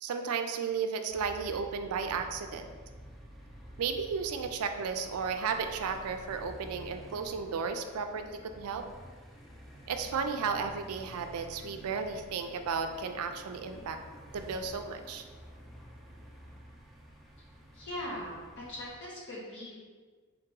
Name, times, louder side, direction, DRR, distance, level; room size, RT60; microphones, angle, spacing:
voice 1, 0.0-2.7 3.8-8.8 9.9-14.0 14.3-15.2, right 5 dB, 75° right, 7 dB, 0.4 m, -34 dB
sound 1, 1.1-19.0, equal, ahead, 0.4 m, -50 dB
voice 2, 17.7-19.7, left 1 dB, 55° left, -6 dB, 1.4 m, -40 dB
3.8 x 2.8 x 3.6 m, 1.4 s
head